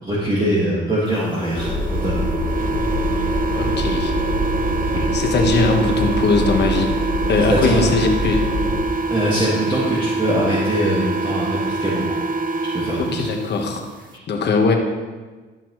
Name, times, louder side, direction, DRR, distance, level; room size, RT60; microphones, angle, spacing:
voice 1, 0.0-2.2 7.5-7.8 9.1-12.2 12.7-13.3, right 1 dB, 25° right, -7 dB, 1.8 m, -22 dB
sound 1, 1.4-13.5, right 3 dB, 45° right, 0.5 m, -25 dB
sound 2, 1.5-8.8, equal, 20° left, 2.2 m, -24 dB
voice 2, 3.6-4.1 5.1-6.9 7.3-8.4 13.0-13.8 14.3-14.8, left 3 dB, 60° left, 3 dB, 1.2 m, -20 dB
12.5 x 5.7 x 3.1 m, 1.3 s
cardioid pair, 90°, 20 cm